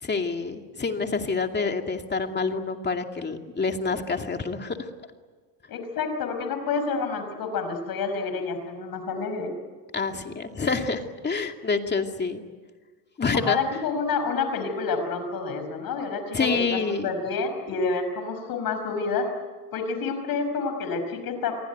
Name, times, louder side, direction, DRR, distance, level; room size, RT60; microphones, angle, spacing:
voice 1, 0.0-4.9 9.9-12.4 13.2-13.6 16.3-17.1, left 4 dB, 25° left, 5 dB, 2.5 m, -27 dB
voice 2, 5.7-9.5 13.3-19.3 19.7-21.5, left 4 dB, 60° left, 7 dB, 5.3 m, -28 dB
27.5 x 23.5 x 9.3 m, 1.4 s
cardioid pair, 105°, 39 cm